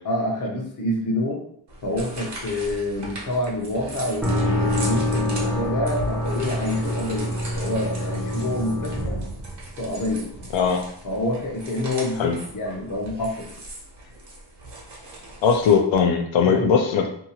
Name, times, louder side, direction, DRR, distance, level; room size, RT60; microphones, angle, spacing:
voice 1, 0.0-1.4 1.8-9.2 9.8-10.3 11.0-13.5 16.4-16.7, left 1 dB, 45° left, -1 dB, 0.7 m, -27 dB
sound 1, 1.7-15.7, right 1 dB, 65° right, 0.9 m, -39 dB
sound 2, 4.2-10.1, equal, ahead, 0.4 m, -26 dB
voice 2, 15.4-17.1, left 6 dB, 85° left, 3 dB, 0.5 m, -19 dB
2.7 x 2.3 x 2.7 m, 0.65 s
wide cardioid pair, 145°, 45 cm